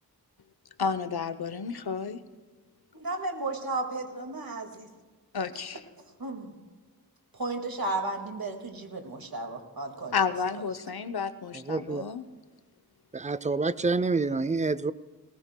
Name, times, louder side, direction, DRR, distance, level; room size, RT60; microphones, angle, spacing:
voice 1, 0.8-2.2 5.3-5.8 10.1-12.3, left 6 dB, 80° left, 12 dB, 0.9 m, -31 dB
voice 2, 2.9-4.9 6.2-6.5 7.3-10.1, right 2 dB, 70° right, 4 dB, 2.1 m, -34 dB
voice 3, 11.5-12.0 13.1-14.9, right 3 dB, 20° right, 16 dB, 0.5 m, -27 dB
20.0 x 19.0 x 2.3 m, 1.4 s
wide cardioid pair, 60°, 37 cm